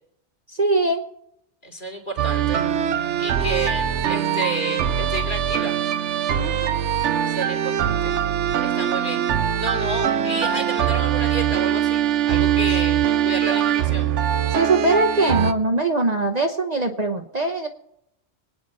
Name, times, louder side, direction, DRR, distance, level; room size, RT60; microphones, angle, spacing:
voice 1, 0.5-1.1 6.4-6.9 14.5-17.7, right 2 dB, 40° right, 4 dB, 1.1 m, -22 dB
voice 2, 1.6-2.7 3.2-5.8 7.3-8.1 8.6-9.2 9.6-14.1, right 1 dB, 45° left, 3 dB, 3.5 m, -31 dB
sound 1, 2.2-15.5, right 10 dB, 90° right, 1.1 m, -22 dB
25.0 x 9.4 x 4.2 m, 0.74 s
omnidirectional pair, 1.2 m